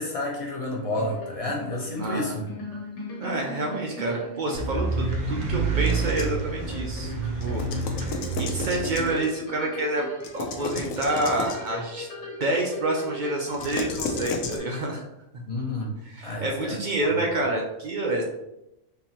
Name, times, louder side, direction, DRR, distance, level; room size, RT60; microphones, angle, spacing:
voice 1, 0.0-2.5 15.5-15.9 16.2-17.2, left 2 dB, 40° left, -2 dB, 0.5 m, -31 dB
sound 1, 0.7-14.8, left 2 dB, 60° left, 1.3 m, -39 dB
voice 2, 2.0-2.4 3.2-7.1 7.4-10.1 10.3-12.1 12.4-15.0 16.1-18.2, right 2 dB, 75° right, 0 dB, 0.4 m, -28 dB
sound 2, 4.5-9.1, right 4 dB, 50° right, 0.7 m, -28 dB
sound 3, 5.8-6.4 7.4-9.3 10.2-11.7 13.5-14.6, left 3 dB, 80° left, 1.0 m, -33 dB
3.8 x 2.7 x 2.8 m, 0.91 s
omnidirectional pair, 1.4 m